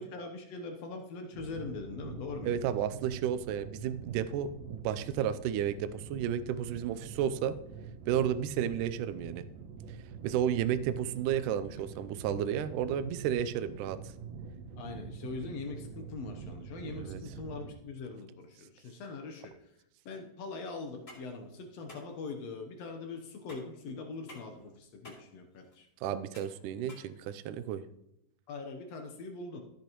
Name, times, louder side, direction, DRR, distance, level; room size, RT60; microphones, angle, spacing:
voice 1, 0.0-2.6 14.8-19.5 20.0-25.9 28.5-29.6, left 3 dB, 80° left, 4 dB, 1.4 m, -42 dB
sound 1, 1.3-17.7, right 6 dB, 70° right, 2.6 m, -45 dB
voice 2, 2.4-7.6 8.1-9.5 9.9-10.0 10.2-14.0 17.0-17.2 26.0-27.9, right 9 dB, 90° right, 12 dB, 1.8 m, -32 dB
sound 2, 20.8-27.8, left 1 dB, 25° left, 2.5 m, -55 dB
13.0 x 8.3 x 3.0 m, 0.79 s
omnidirectional pair, 4.3 m